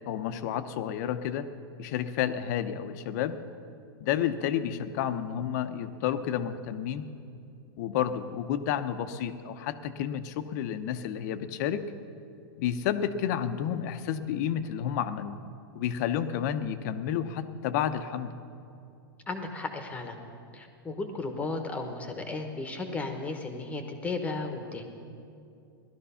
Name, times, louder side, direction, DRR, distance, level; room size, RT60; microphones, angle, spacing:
voice 1, 0.1-1.5 1.8-3.4 4.0-7.0 7.8-11.8 12.6-15.4 15.7-18.3, left 9 dB, 45° left, 11 dB, 0.7 m, -30 dB
voice 2, 19.3-20.2 20.5-24.9, left 3 dB, 10° left, 6 dB, 1.1 m, -35 dB
17.0 x 12.5 x 5.6 m, 2.5 s
hypercardioid pair, 150°, 13 cm